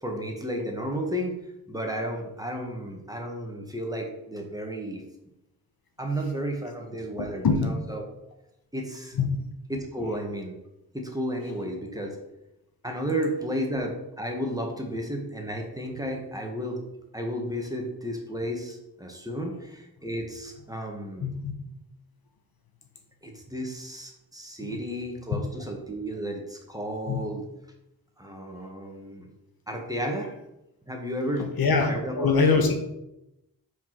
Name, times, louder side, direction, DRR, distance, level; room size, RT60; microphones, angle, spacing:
voice 1, 0.0-1.4 1.7-5.0 6.0-8.1 8.7-9.2 9.7-10.6 10.9-12.2 12.8-16.8 17.1-21.3 23.2-27.5 28.2-29.3 29.7-30.3 30.9-31.5 31.9-32.3, equal, 10° right, 1 dB, 1.6 m, -33 dB
voice 2, 7.2-7.7 9.1-9.4 21.2-21.5 24.7-24.8 27.1-27.2 31.6-32.7, left 4 dB, 70° left, 5 dB, 1.1 m, -23 dB
5.3 x 4.7 x 6.1 m, 0.89 s
cardioid pair, 65°, 38 cm